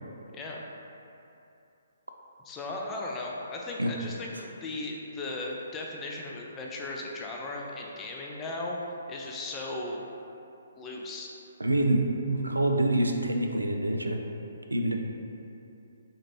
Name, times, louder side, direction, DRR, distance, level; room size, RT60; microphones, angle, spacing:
voice 1, 0.3-0.6 2.4-8.8 9.1-10.1 10.8-11.3, left 2 dB, 15° left, -2 dB, 0.4 m, -37 dB
voice 2, 11.6-14.2 14.7-15.0, right 1 dB, 85° right, 3 dB, 0.3 m, -26 dB
4.4 x 2.5 x 2.9 m, 2.8 s
figure-of-eight pair, 135°, 0 cm